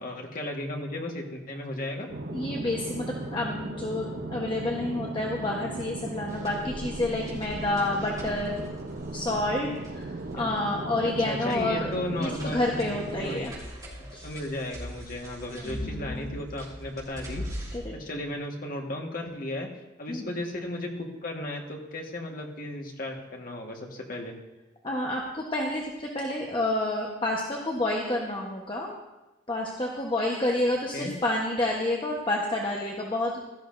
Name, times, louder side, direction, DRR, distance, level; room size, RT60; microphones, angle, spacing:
voice 1, 0.0-2.1 10.4-10.5 11.0-12.7 13.2-13.5 14.2-17.4 17.9-24.3 30.9-31.1, left 1 dB, 50° left, 1 dB, 1.5 m, -35 dB
sound 1, 2.1-13.4, right 2 dB, 55° right, 0.7 m, -37 dB
voice 2, 2.3-8.6 9.1-11.9 12.2-13.5 14.1-14.3 15.5-16.3 17.7-17.9 20.1-20.3 24.8-28.9 29.5-33.4, left 1 dB, 25° left, -1 dB, 1.0 m, -29 dB
sound 2, 6.3-17.8, equal, 20° right, 4.1 m, -42 dB
16.5 x 12.5 x 2.6 m, 1.1 s
head